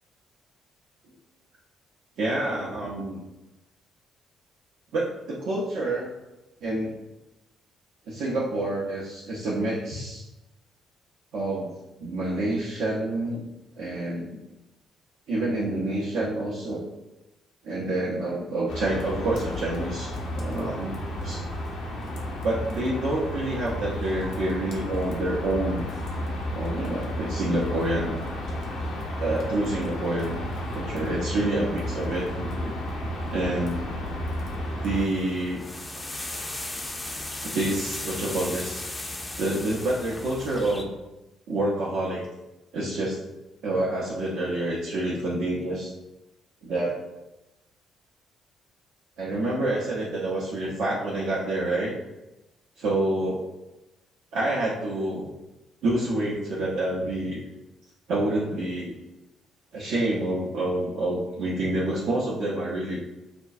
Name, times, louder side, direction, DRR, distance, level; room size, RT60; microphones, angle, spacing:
voice 1, 2.2-3.2 4.9-6.1 6.6-6.9 8.1-10.2 11.3-11.7 12.0-13.4 13.8-14.4 15.3-16.8 17.6-20.9 21.2-21.4 22.4-25.9 26.5-28.2 29.2-30.4 30.7-32.8 33.3-33.8 34.8-35.6 37.4-38.8 39.4-40.9 41.5-42.2 42.7-43.2 43.6-45.9 46.6-47.0 49.2-51.9 52.8-53.5 54.3-55.3 55.8-57.4 58.1-58.9 59.7-63.0, right 1 dB, 60° right, -6 dB, 0.6 m, -28 dB
sound 1, 18.7-35.0, left 1 dB, 65° left, 0.6 m, -32 dB
sound 2, 34.9-40.8, left 2 dB, 20° left, 0.5 m, -36 dB
5.1 x 2.2 x 2.4 m, 0.98 s
figure-of-eight pair, 45°, 0 cm